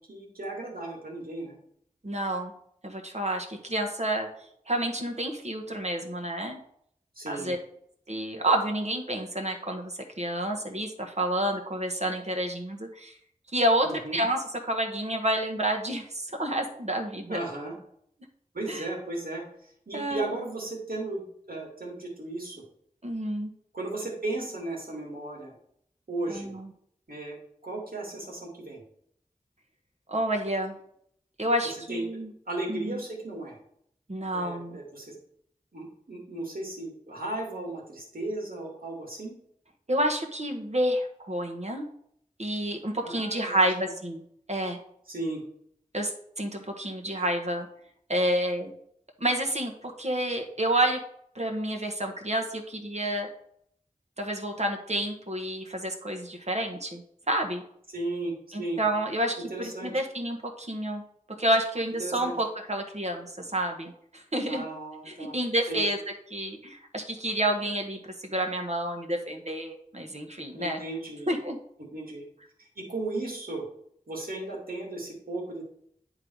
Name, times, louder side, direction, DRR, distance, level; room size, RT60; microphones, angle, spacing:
voice 1, 0.1-1.6 7.2-7.6 13.8-14.2 17.3-17.7 18.5-22.6 23.7-25.5 26.1-26.6 27.1-27.4 27.6-28.8 31.6-32.2 32.5-33.6 34.3-35.1 35.7-39.3 43.0-43.7 45.1-45.4 57.9-58.8 59.5-60.0 62.0-62.3 64.5-65.4 65.7-65.8 70.5-71.3 71.8-72.3 72.6-73.6 74.1-75.6, right 2 dB, 80° right, -2 dB, 2.6 m, -35 dB
voice 2, 2.0-2.5 2.8-4.3 4.7-6.6 7.3-7.6 8.1-13.2 13.5-17.4 18.7-18.8 19.9-20.3 23.0-23.5 26.3-26.7 30.1-30.8 31.4-32.3 32.7-33.0 34.1-34.8 39.9-41.8 42.4-44.2 44.5-44.8 45.9-47.7 48.1-48.7 49.2-51.0 51.3-53.3 54.2-57.6 58.5-61.0 61.4-64.6 65.1-66.0 66.3-70.8 71.3-71.6, right 1 dB, 50° right, 3 dB, 1.3 m, -29 dB
9.7 x 4.0 x 4.7 m, 0.68 s
wide cardioid pair, 50°, 15 cm